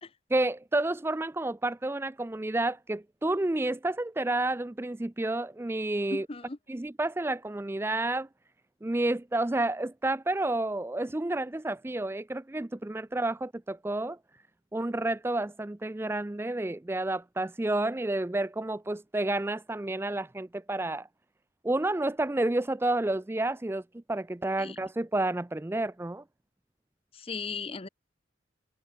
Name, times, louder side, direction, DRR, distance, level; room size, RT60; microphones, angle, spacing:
voice 1, 0.3-6.3 6.7-8.3 8.8-14.2 14.7-21.1 21.6-23.8 24.1-26.2, right 2 dB, 10° right, 0.4 m, -30 dB
voice 2, 6.1-6.6 24.6-24.8 27.1-27.9, left 4 dB, 30° left, 0.7 m, -37 dB
head